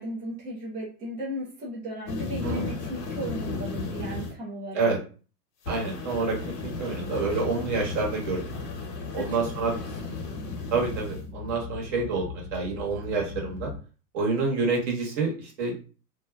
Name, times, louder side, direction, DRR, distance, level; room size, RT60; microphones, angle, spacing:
voice 1, 0.0-4.9 9.1-9.4 9.7-10.1, equal, 15° right, -5 dB, 0.5 m, -36 dB
sound 1, 2.1-4.3 5.6-11.2, left 3 dB, 70° left, 1.0 m, -35 dB
voice 2, 5.7-8.4 9.1-9.7 10.7-13.7 14.1-15.7, right 4 dB, 45° right, -1 dB, 1.2 m, -28 dB
sound 2, 7.0-13.8, left 4 dB, 20° left, 0.6 m, -40 dB
2.7 x 2.1 x 2.3 m, 0.37 s
hypercardioid pair, 125°, 49 cm